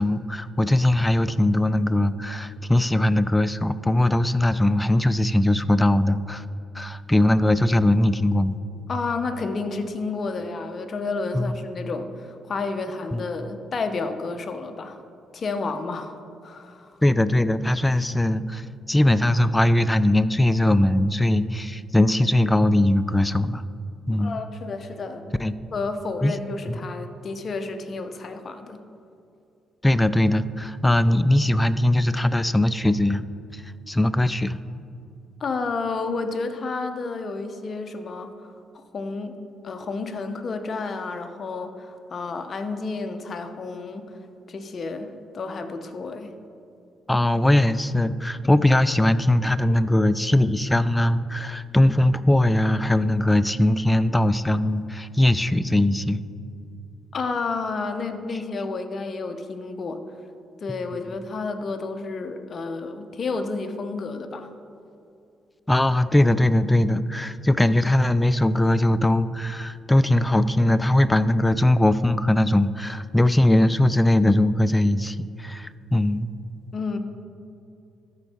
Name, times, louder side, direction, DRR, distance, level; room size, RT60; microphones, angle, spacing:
voice 1, 0.0-6.4 6.7-8.6 11.3-11.6 13.1-13.2 17.0-23.6 24.1-24.4 25.4-25.5 26.2-26.3 26.7-26.8 29.8-33.2 33.5-34.6 47.1-56.2 65.7-76.3, left 1 dB, 10° left, 13 dB, 0.3 m, -20 dB
voice 2, 8.9-15.0 15.3-16.2 16.4-17.0 24.2-25.3 25.7-28.8 35.4-39.4 39.6-44.2 44.5-46.3 57.1-60.0 60.6-64.5 76.7-77.0, left 3 dB, 45° left, 7 dB, 0.7 m, -31 dB
13.0 x 4.5 x 4.2 m, 2.5 s
cardioid pair, 90°, 0 cm